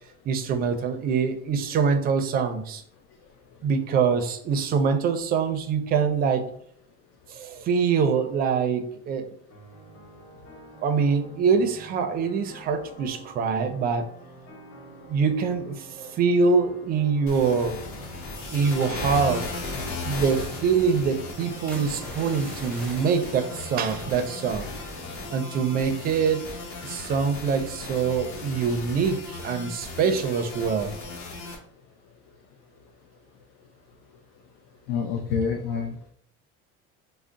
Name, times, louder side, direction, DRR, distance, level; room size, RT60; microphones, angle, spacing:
voice 1, 0.3-2.8 3.6-6.5 7.3-9.3 10.8-14.1 15.1-17.8 18.5-19.5 20.0-24.6 25.3-26.5 26.8-31.0, right 5 dB, 30° right, 7 dB, 0.4 m, -24 dB
sound 1, 9.5-25.4, right 1 dB, 65° left, 1.3 m, -46 dB
sound 2, 17.3-31.6, left 3 dB, 45° left, 0.9 m, -36 dB
sound 3, 21.7-25.4 25.7-26.1 26.5-26.8, equal, 5° left, 0.6 m, -45 dB
voice 2, 34.9-36.1, left 6 dB, 80° left, 1 dB, 0.6 m, -27 dB
3.5 x 2.0 x 3.8 m, 0.63 s
cardioid pair, 155°, 29 cm